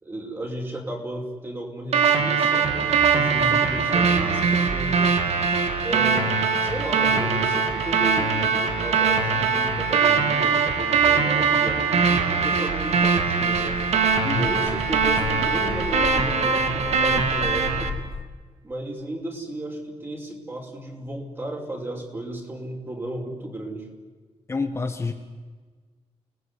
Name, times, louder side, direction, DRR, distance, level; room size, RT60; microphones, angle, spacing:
voice 1, 0.0-5.2 5.8-13.9 14.3-17.9 18.6-23.9, right 1 dB, 20° right, 2 dB, 5.6 m, -34 dB
sound 1, 1.9-17.9, right 5 dB, 85° right, 2.8 m, -22 dB
sound 2, 13.0-18.2, left 5 dB, 70° left, 4.6 m, -36 dB
voice 2, 24.5-25.1, left 4 dB, 25° left, 4 dB, 1.7 m, -28 dB
29.5 x 19.5 x 9.9 m, 1.5 s
wide cardioid pair, 150°, 11 cm